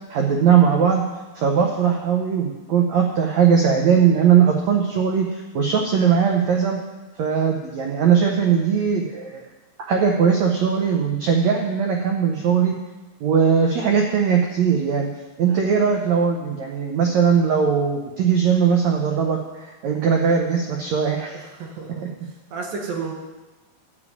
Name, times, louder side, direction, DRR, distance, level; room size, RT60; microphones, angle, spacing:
voice 1, 0.1-1.0 1.3-6.8 7.2-9.4 9.9-12.7 13.2-15.1 15.4-21.4 22.2-22.3, right 7 dB, 85° right, 1 dB, 1.5 m, -19 dB
voice 2, 21.3-22.1 22.5-23.1, right 5 dB, 65° right, 1 dB, 2.9 m, -31 dB
12.5 x 5.3 x 8.4 m, 1.1 s
omnidirectional pair, 4.6 m